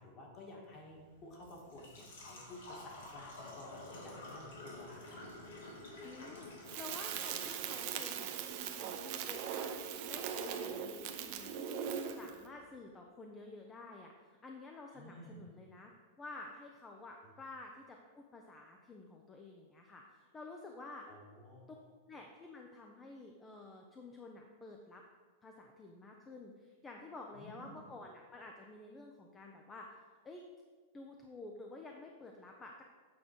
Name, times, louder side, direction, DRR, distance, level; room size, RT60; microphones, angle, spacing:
voice 1, 0.0-5.3 14.9-15.4 17.2-17.3 21.1-21.8 27.3-27.8, left 1 dB, 30° left, -1 dB, 1.9 m, -53 dB
Engine / Trickle dribble / Fill (with liquid), 0.7-12.7, left 2 dB, 80° left, 2.6 m, -53 dB
voice 2, 6.0-8.4 8.7-11.8 12.1-15.9 16.2-21.1 22.1-25.0 25.4-30.0 30.2-30.4 30.9-32.8, left 2 dB, 15° left, 2 dB, 0.6 m, -51 dB
Crackle, 6.7-12.4, right 8 dB, 45° right, 0.7 m, -40 dB
8.5 x 3.9 x 6.1 m, 1.5 s
supercardioid pair, 155°, 0 cm